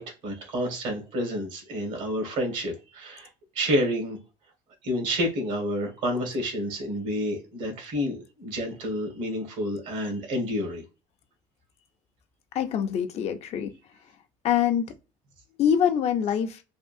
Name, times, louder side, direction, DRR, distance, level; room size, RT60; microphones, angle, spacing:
voice 1, 0.0-3.3 3.6-4.2 4.8-10.8, equal, 70° right, 1.6 m, -29 dB
voice 2, 12.5-13.7 14.4-14.9 15.6-16.6, left 9 dB, 50° left, 0.5 m, -24 dB
3.5 x 2.4 x 2.5 m
cardioid pair, 135°, 14 cm